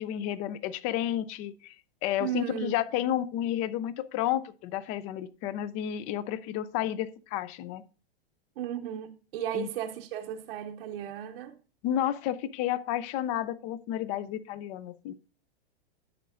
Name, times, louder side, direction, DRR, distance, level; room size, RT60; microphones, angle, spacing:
voice 1, 0.0-1.7 2.0-7.8 9.5-9.7 11.8-15.1, left 11 dB, 25° left, 0.4 m, -31 dB
voice 2, 2.2-2.7 8.6-11.6, right 10 dB, 65° right, 0.9 m, -35 dB
11.0 x 7.3 x 2.5 m
hypercardioid pair, 145°, 31 cm